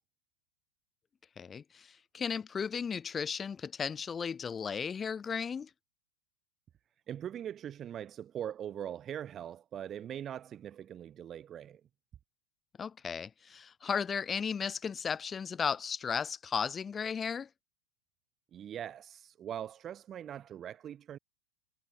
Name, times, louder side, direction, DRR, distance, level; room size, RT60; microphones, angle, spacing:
voice 1, 1.4-1.9 2.1-5.7 12.8-17.5, left 6 dB, 20° left, 6.5 m, -35 dB
voice 2, 7.1-11.8 18.5-21.2, right 10 dB, 25° right, 7.2 m, -41 dB
figure-of-eight pair, 90°, 0 cm